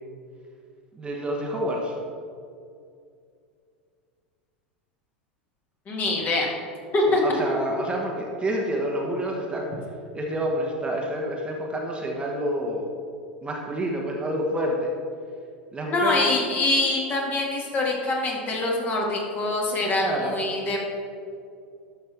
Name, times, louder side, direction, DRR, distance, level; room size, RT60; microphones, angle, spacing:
voice 1, 0.9-1.9 7.1-9.7 10.1-12.9 13.4-14.9 15.7-16.3 20.0-20.4, right 1 dB, 20° right, 0 dB, 1.2 m, -28 dB
voice 2, 5.9-6.5 6.9-7.2 15.9-20.8, left 2 dB, 30° left, -2 dB, 1.9 m, -24 dB
12.0 x 5.9 x 3.5 m, 2.4 s
figure-of-eight pair, 85°, 6 cm